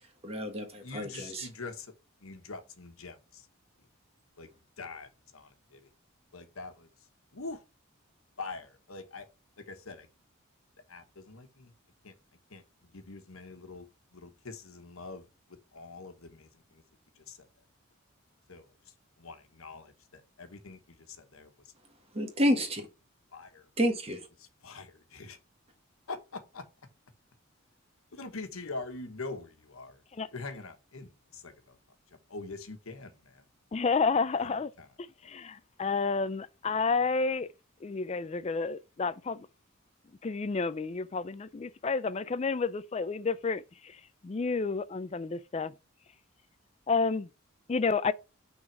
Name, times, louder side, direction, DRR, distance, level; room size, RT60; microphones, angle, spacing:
voice 1, 0.2-1.5 22.1-22.9 23.8-24.2, equal, 30° right, 1.5 m, -29 dB
voice 2, 0.8-1.9 2.2-3.5 4.4-4.5 4.8-5.8 6.3-6.9 7.3-7.6 8.4-9.2 9.7-10.1 10.9-11.7 12.0-12.1 12.5-12.6 12.9-13.9 14.1-15.3 15.7-16.8 17.2-17.4 18.5-18.7 19.2-21.5 23.3-23.7 24.6-25.4 26.1-26.6 28.1-30.0 30.3-31.7 32.3-33.4 34.4-34.5, left 3 dB, 85° left, 1.3 m, -44 dB
voice 3, 33.7-34.7 35.0-37.5 37.8-39.5 40.2-45.7 46.9-47.3 47.7-48.1, left 4 dB, 30° left, 0.4 m, -30 dB
6.0 x 4.0 x 5.8 m
head